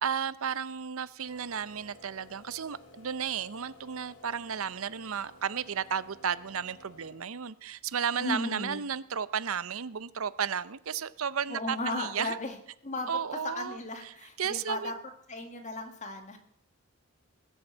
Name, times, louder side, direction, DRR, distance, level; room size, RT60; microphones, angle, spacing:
voice 1, 0.0-12.4 13.1-13.8 14.0-15.0, right 7 dB, 85° right, 17 dB, 0.7 m, -33 dB
sound 1, 1.3-7.6, left 1 dB, 85° left, 3.2 m, -55 dB
voice 2, 8.2-8.8 11.5-12.6 12.8-14.9 15.3-16.4, left 2 dB, 35° left, 5 dB, 2.1 m, -36 dB
20.0 x 8.0 x 7.4 m, 0.69 s
head